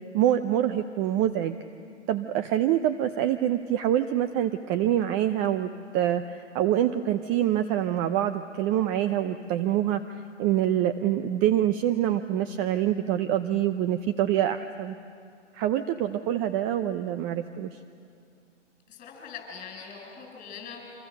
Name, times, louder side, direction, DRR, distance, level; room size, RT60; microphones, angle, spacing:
voice 1, 0.1-1.6 2.1-10.0 10.4-14.9 15.5-17.8, right 11 dB, 25° right, 10 dB, 0.6 m, -25 dB
voice 2, 18.9-20.9, left 6 dB, 20° left, 1 dB, 7.3 m, -42 dB
27.5 x 26.0 x 6.6 m, 2.5 s
hypercardioid pair, 130°, 36 cm